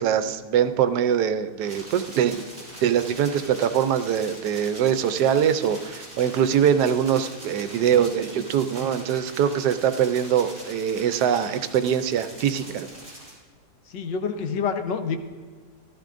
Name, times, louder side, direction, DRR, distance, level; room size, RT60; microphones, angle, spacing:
voice 1, 0.0-2.5 2.8-12.9, right 9 dB, 75° right, 10 dB, 1.1 m, -23 dB
sound 1, 1.6-13.3, right 1 dB, 30° right, 4.1 m, -42 dB
voice 2, 13.9-15.2, left 6 dB, 90° left, 7 dB, 1.6 m, -27 dB
14.0 x 13.0 x 2.5 m, 1.5 s
omnidirectional pair, 1.9 m